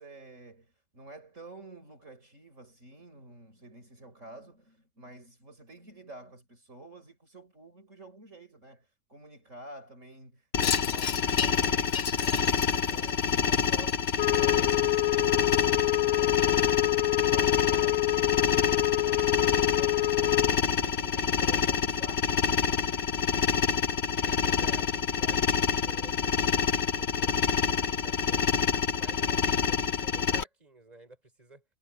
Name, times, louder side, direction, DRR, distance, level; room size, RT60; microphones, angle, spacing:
voice 1, 0.0-8.8 9.1-15.7 16.1-22.3, right 2 dB, 60° right, 6.1 m, -50 dB
sound 1, 10.5-30.4, left 6 dB, 50° left, 1.4 m, -27 dB
Wind chime, 10.6-15.2, left 8 dB, 70° left, 0.4 m, -36 dB
Wind instrument woodwind instrument, 14.2-20.6, left 17 dB, 90° left, 1.2 m, -27 dB
voice 2, 24.2-28.5 29.0-31.6, right 2 dB, 25° right, 6.0 m, -53 dB
omnidirectional pair, 1.5 m